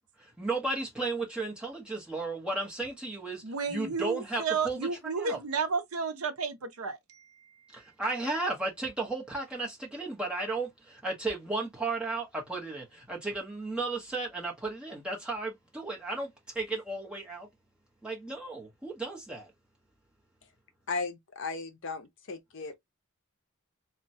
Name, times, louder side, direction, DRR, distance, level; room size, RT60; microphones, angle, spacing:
voice 1, 0.2-3.4 3.7-5.4 7.7-17.5 18.0-19.5, right 3 dB, 5° right, 0.9 m, -34 dB
voice 2, 3.4-7.5, right 5 dB, 75° right, 0.6 m, -32 dB
voice 3, 20.9-22.7, left 4 dB, 55° left, 0.6 m, -36 dB
3.0 x 2.1 x 2.6 m
head